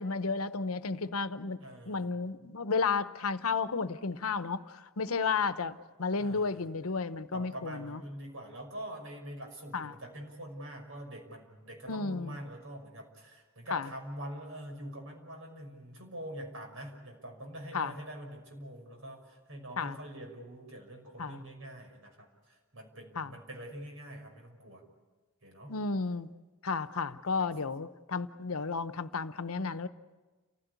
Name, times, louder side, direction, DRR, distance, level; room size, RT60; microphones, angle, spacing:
voice 1, 0.0-8.0 9.7-9.9 11.9-12.4 13.7-13.9 17.7-17.9 19.8-20.0 21.2-21.4 23.2-23.3 25.7-26.3 26.6-29.9, left 4 dB, 85° left, 0.9 m, -33 dB
voice 2, 1.6-2.1 6.2-6.7 7.3-24.8 25.4-25.7 27.4-27.5, right 1 dB, 65° right, 6.0 m, -45 dB
30.0 x 16.0 x 8.3 m
head